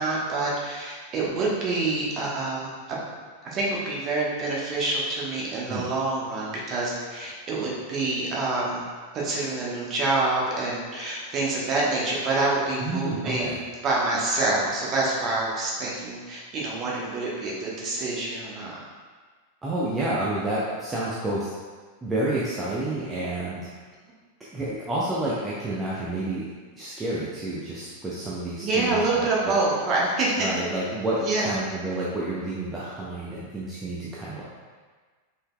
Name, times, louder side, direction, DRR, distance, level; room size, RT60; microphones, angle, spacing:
voice 1, 0.0-3.0 3.4-8.8 9.1-18.8 28.6-30.5 31.2-31.5, right 2 dB, 30° right, -4 dB, 1.1 m, -27 dB
voice 2, 12.8-13.6 19.6-21.6 22.0-23.7 24.5-26.5 26.7-29.5 30.4-34.4, right 1 dB, 15° right, -7 dB, 0.6 m, -29 dB
5.4 x 3.7 x 2.2 m, 1.5 s
figure-of-eight pair, 90°, 0 cm